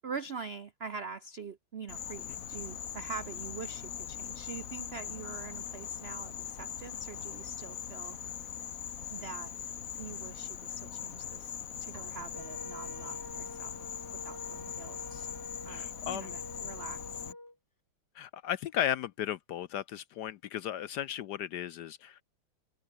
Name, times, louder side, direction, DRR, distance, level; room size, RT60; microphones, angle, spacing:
voice 1, 0.0-8.2 9.1-9.5 10.0-13.7 14.2-15.3 15.6-17.2, right 5 dB, 75° right, 0.5 m, -44 dB
Insect, 1.9-17.3, left 8 dB, 50° left, 1.3 m, -41 dB
sound 1, 11.9-13.7, right 3 dB, 35° right, 3.3 m, -57 dB
Wind instrument woodwind instrument, 12.3-17.6, left 1 dB, 10° left, 1.9 m, -47 dB
voice 2, 15.7-16.3 17.2-17.3 18.1-22.2, left 11 dB, 70° left, 1.0 m, -35 dB
open air
omnidirectional pair, 2.2 m